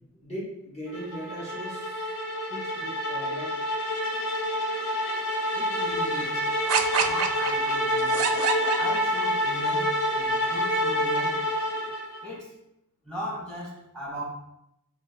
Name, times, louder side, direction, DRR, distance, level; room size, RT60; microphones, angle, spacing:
voice 1, 0.2-2.2 2.5-3.6 5.1-5.2, right 1 dB, 30° left, -7 dB, 1.0 m, -39 dB
sound 1, 0.9-12.3, equal, 65° left, 0.6 m, -27 dB
voice 2, 5.5-6.4 6.9-8.2 8.7-11.4 12.2-12.6 13.0-14.2, equal, 5° left, -4 dB, 0.9 m, -38 dB
sound 2, 6.7-9.5, right 6 dB, 80° right, 0.4 m, -27 dB
4.3 x 2.5 x 3.3 m, 0.84 s
head